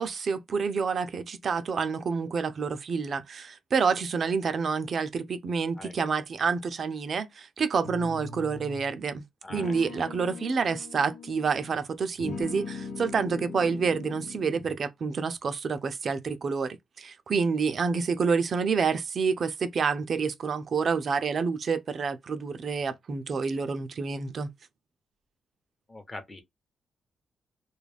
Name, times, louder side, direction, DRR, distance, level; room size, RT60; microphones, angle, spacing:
voice 1, 0.0-9.2 9.5-24.5, right 5 dB, 55° right, 0.5 m, -28 dB
sound 1, 7.8-8.9 9.5-11.8 12.2-14.8, left 4 dB, 80° left, 0.7 m, -40 dB
voice 2, 9.4-9.8 25.9-26.4, left 2 dB, 20° left, 0.9 m, -42 dB
2.4 x 2.2 x 3.2 m
cardioid pair, 85°, 0 cm